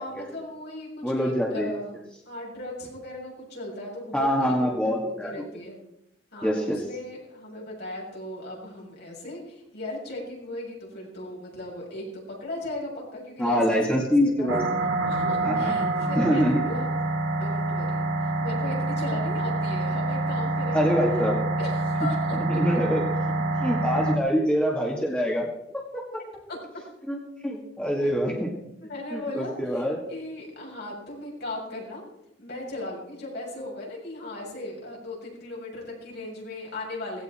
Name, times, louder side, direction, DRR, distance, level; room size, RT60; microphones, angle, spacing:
voice 1, 0.0-1.9 2.3-4.6 4.8-5.8 6.3-14.5 15.1-16.9 17.3-21.0 21.6-22.4 26.5-26.6 28.0-28.1 28.9-32.0 32.4-37.2, left 1 dB, 60° left, -3 dB, 7.4 m, -37 dB
voice 2, 1.0-1.8 4.1-5.4 6.4-6.8 13.4-14.6 15.4-15.7 16.2-16.6 20.7-21.4 22.3-23.0 23.6-25.5 25.7-26.0 27.0-27.2 27.4-28.5 29.1-30.0, equal, 5° left, -1 dB, 2.1 m, -25 dB
sound 1, 14.5-24.2, right 2 dB, 85° right, 2.2 m, -26 dB
18.0 x 16.5 x 4.4 m, 0.82 s
head